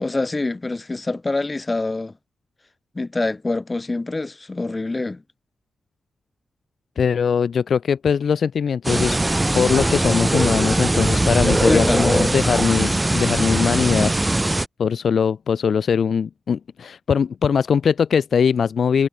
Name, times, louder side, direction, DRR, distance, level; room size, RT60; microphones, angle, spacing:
voice 1, 0.0-2.1 2.9-5.2 11.7-12.3, left 2 dB, 30° left, 2.5 m, -25 dB
voice 2, 7.0-9.2 9.5-14.2 14.8-19.1, left 6 dB, 70° left, 0.4 m, -21 dB
sound 1, 8.8-14.7, right 1 dB, 20° right, 0.3 m, -20 dB
cardioid pair, 60°, 0 cm